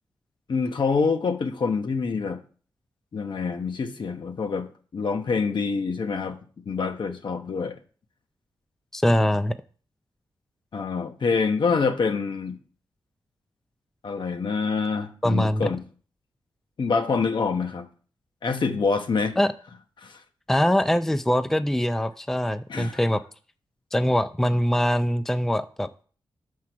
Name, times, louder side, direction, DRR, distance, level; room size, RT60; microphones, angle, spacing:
voice 1, 0.5-2.4 3.1-6.4 6.7-7.8 10.7-12.6 14.0-15.8 16.8-17.8 18.4-19.4 20.0-20.2 22.7-23.0, left 5 dB, 60° left, 0.9 m, -26 dB
voice 2, 8.9-9.6 15.2-15.7 19.4-19.5 20.5-23.2 23.9-25.9, equal, 5° left, 0.4 m, -23 dB
5.8 x 4.8 x 5.9 m
cardioid pair, 50°, 9 cm